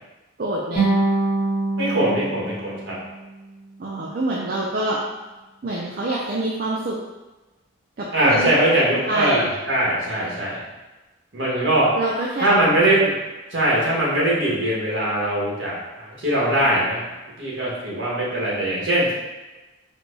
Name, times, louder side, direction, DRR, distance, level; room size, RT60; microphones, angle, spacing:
voice 1, 0.4-0.9 3.8-5.0 5.6-7.0 8.0-8.8 9.1-9.4 12.0-12.5, right 2 dB, 45° right, -4 dB, 0.4 m, -26 dB
sound 1, 0.8-3.9, right 2 dB, 35° left, 1.2 m, -25 dB
voice 2, 1.8-3.0 8.1-10.6 11.3-11.9 12.4-13.2 13.5-17.0 17.4-19.1, right 1 dB, 65° right, -6 dB, 1.4 m, -21 dB
4.4 x 2.3 x 4.0 m, 1.1 s
head